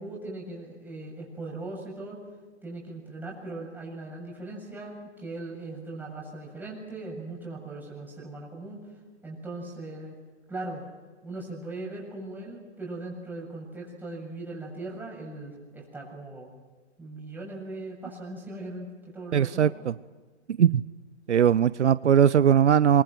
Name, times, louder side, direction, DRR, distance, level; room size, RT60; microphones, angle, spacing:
voice 1, 0.0-2.2 2.6-8.8 9.2-10.1 10.5-10.8 11.2-16.5 17.0-18.9 19.1-19.7, right 2 dB, 5° right, -3 dB, 7.4 m, -39 dB
voice 2, 19.3-19.9 20.6-20.8 21.3-23.0, right 8 dB, 75° right, 18 dB, 0.7 m, -20 dB
26.0 x 23.5 x 6.1 m, 1.3 s
figure-of-eight pair, 130°, 35 cm